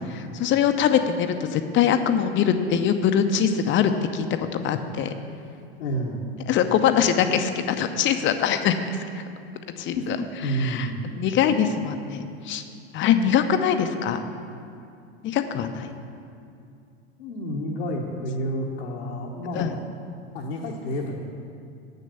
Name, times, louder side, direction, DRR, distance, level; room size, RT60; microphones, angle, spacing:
voice 1, 0.2-5.1 6.5-8.7 9.1-9.2 9.8-10.2 10.5-12.6 12.9-14.2 15.2-15.9 19.5-19.7, left 8 dB, 35° left, 8 dB, 0.7 m, -23 dB
voice 2, 5.8-6.2 9.9-10.1 10.4-11.1 17.2-19.8 20.3-21.2, equal, 75° left, -2 dB, 1.1 m, -29 dB
7.5 x 6.5 x 6.8 m, 2.5 s
hypercardioid pair, 85°, 32 cm